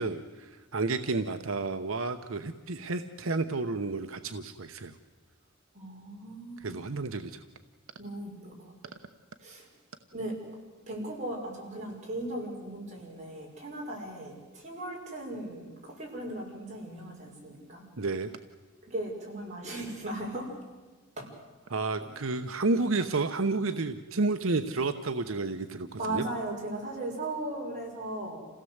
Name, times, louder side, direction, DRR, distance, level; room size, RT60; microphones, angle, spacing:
voice 1, 0.0-4.9 6.6-7.4 18.0-18.3 21.7-26.2, right 3 dB, 80° right, 8 dB, 0.9 m, -31 dB
voice 2, 5.7-6.8 8.0-8.7 9.4-9.7 10.1-10.4 10.9-17.8 18.9-20.5 21.2-21.3 26.0-28.4, right 1 dB, 35° right, -2 dB, 6.0 m, -37 dB
28.0 x 17.0 x 8.0 m, 1.3 s
head